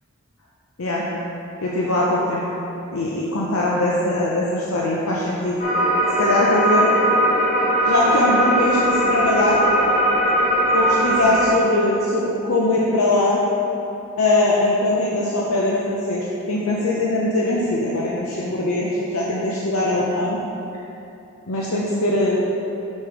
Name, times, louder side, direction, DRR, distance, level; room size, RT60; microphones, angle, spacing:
voice 1, 1.6-2.4 2.9-5.6 6.2-6.9 7.9-9.6 10.7-13.4 14.2-20.4 21.5-22.5, left 2 dB, 70° left, -5 dB, 0.7 m, -21 dB
sound 1, 5.6-11.5, right 1 dB, 35° left, 1.3 m, -19 dB
6.3 x 5.3 x 4.9 m, 3.0 s
head